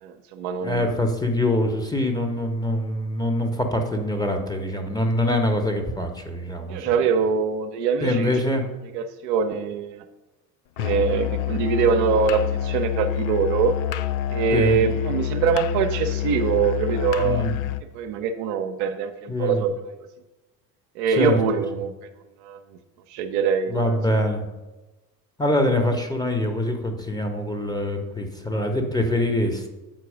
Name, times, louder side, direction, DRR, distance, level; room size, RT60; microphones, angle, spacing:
voice 1, 0.0-1.0 6.7-8.3 8.9-10.0 10.8-13.7 14.3-17.5 17.9-19.7 21.0-21.9 22.4-22.6 23.1-24.0, right 6 dB, 55° right, 6 dB, 0.7 m, -23 dB
voice 2, 0.6-7.0 8.0-8.6 14.5-14.8 17.2-17.5 19.3-19.7 21.1-21.4 23.7-24.5 25.4-29.7, left 1 dB, 10° left, 5 dB, 1.1 m, -24 dB
Musical instrument, 10.8-17.9, left 11 dB, 40° left, 0.4 m, -27 dB
7.7 x 4.7 x 5.0 m, 1.1 s
hypercardioid pair, 65°, 49 cm